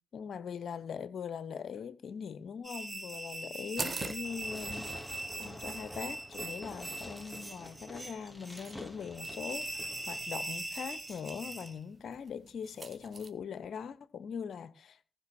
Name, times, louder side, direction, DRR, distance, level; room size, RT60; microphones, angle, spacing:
voice 1, 0.1-5.1 5.4-15.0, left 7 dB, 60° left, 1.0 m, -41 dB
sound 1, 2.6-11.8, right 2 dB, 10° right, 1.5 m, -41 dB
sound 2, 3.8-13.3, right 4 dB, 40° right, 1.3 m, -47 dB
Fireworks, 4.2-10.2, equal, 5° left, 2.3 m, -48 dB
15.0 x 6.1 x 6.4 m
hypercardioid pair, 50°, 0 cm